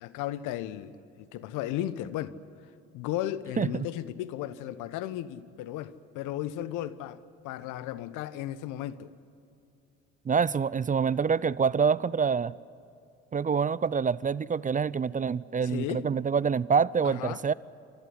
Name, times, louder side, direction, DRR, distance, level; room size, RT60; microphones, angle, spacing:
voice 1, 0.0-2.4 2.9-9.1 15.6-16.1 17.0-17.4, left 12 dB, 70° left, 1.1 m, -35 dB
voice 2, 10.3-12.5 13.3-17.5, right 6 dB, 25° right, 0.5 m, -26 dB
28.5 x 14.5 x 10.0 m
hypercardioid pair, 60°, 32 cm